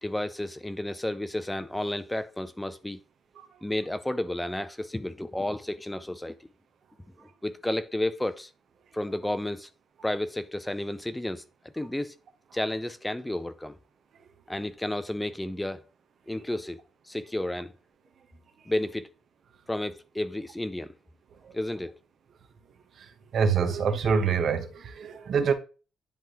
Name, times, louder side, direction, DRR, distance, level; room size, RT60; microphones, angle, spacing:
voice 1, 0.0-3.0 3.6-6.4 7.4-8.5 8.9-9.7 10.0-11.4 11.7-12.1 12.5-13.8 14.5-15.8 16.3-16.8 17.1-17.7 18.7-19.1 19.7-20.9 21.5-22.0, left 1 dB, 10° left, 0.5 m, -31 dB
voice 2, 23.3-25.5, right 6 dB, 60° right, 1.1 m, -25 dB
10.5 x 3.5 x 3.0 m
cardioid pair, 90°, 0 cm